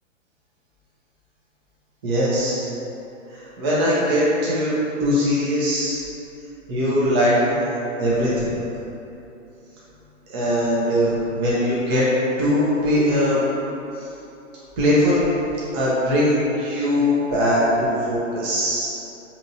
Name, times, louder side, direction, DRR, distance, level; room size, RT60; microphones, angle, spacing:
voice 1, 2.0-2.6 3.3-4.7 5.0-6.0 6.7-7.7 8.0-8.5 10.3-12.1 12.4-13.4 14.0-14.1 14.8-15.2 15.7-18.9, equal, 20° right, -8 dB, 0.4 m, -21 dB
3.5 x 2.8 x 2.6 m, 2.9 s
figure-of-eight pair, 120°, 39 cm